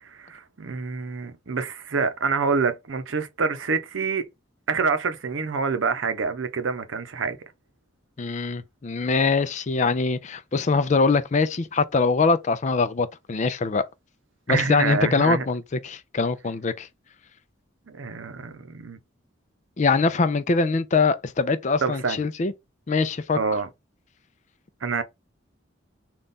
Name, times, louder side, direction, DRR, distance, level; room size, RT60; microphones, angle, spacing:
voice 1, 0.0-4.3 4.7-7.4 14.5-15.5 17.9-19.0 21.8-22.2 23.3-23.7 24.8-25.0, right 5 dB, 85° right, 0.7 m, -27 dB
voice 2, 8.2-13.8 14.5-16.9 19.8-22.5 22.9-23.4, left 4 dB, 40° left, 0.4 m, -23 dB
4.0 x 2.4 x 3.6 m
head